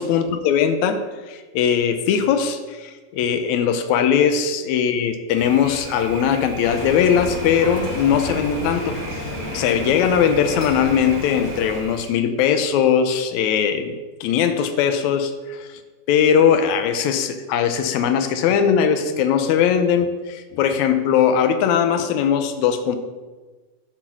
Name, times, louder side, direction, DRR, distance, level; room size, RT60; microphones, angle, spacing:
voice 1, 0.0-9.0 9.5-15.8 16.1-23.0, left 8 dB, 80° left, 8 dB, 1.8 m, -20 dB
Thunder, 5.4-12.2, right 6 dB, 85° right, 1.6 m, -36 dB
sound 1, 6.6-11.8, left 2 dB, 60° left, 1.5 m, -31 dB
9.8 x 4.6 x 6.0 m, 1.3 s
omnidirectional pair, 3.9 m